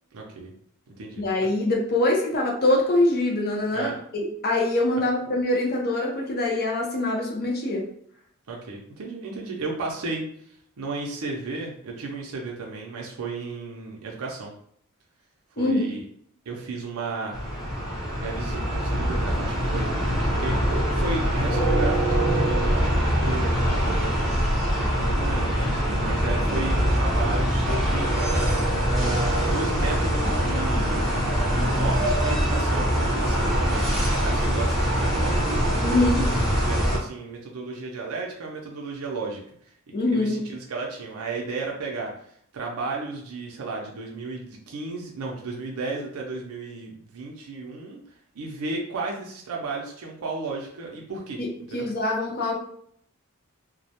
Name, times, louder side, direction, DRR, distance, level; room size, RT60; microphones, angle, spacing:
voice 1, 0.1-0.5 1.0-1.2 3.7-4.0 8.5-14.5 15.5-16.0 16.5-17.4 18.2-19.9 20.4-28.1 28.5-28.6 28.9-31.0 31.3-35.4 35.9-39.7 40.1-42.1 42.5-48.0 48.3-51.4 51.7-51.9, right 3 dB, 70° right, -1 dB, 0.5 m, -34 dB
voice 2, 1.2-7.8 15.6-15.8 35.8-36.2 39.9-40.4 51.4-51.5 51.7-52.6, left 2 dB, 45° left, -1 dB, 0.6 m, -24 dB
sound 1, 17.3-37.0, equal, ahead, 0.6 m, -23 dB
2.2 x 2.1 x 2.8 m, 0.65 s
head